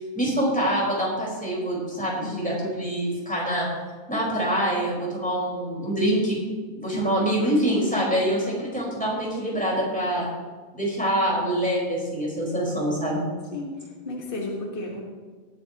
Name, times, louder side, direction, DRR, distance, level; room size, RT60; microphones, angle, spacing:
voice 1, 0.1-3.7 4.1-6.4 6.8-10.3 10.7-13.3, right 1 dB, ahead, -5 dB, 4.3 m, -25 dB
voice 2, 13.5-15.0, left 2 dB, 30° left, -2 dB, 1.0 m, -33 dB
19.0 x 11.0 x 3.0 m, 1.5 s
omnidirectional pair, 3.4 m